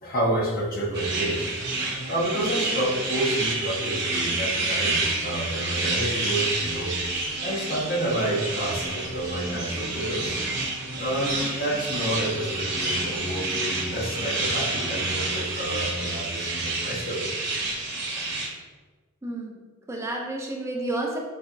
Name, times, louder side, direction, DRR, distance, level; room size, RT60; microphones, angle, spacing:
voice 1, 0.0-1.5 2.1-6.9 7.4-10.4 11.0-17.2, right 1 dB, 45° left, -2 dB, 0.8 m, -29 dB
sound 1, 0.9-18.5, right 2 dB, 55° right, 0.9 m, -29 dB
sound 2, 1.6-16.7, equal, 85° right, 0.7 m, -42 dB
voice 2, 19.2-21.2, right 2 dB, 15° right, 0 dB, 0.5 m, -31 dB
4.1 x 3.3 x 2.5 m, 1.3 s
head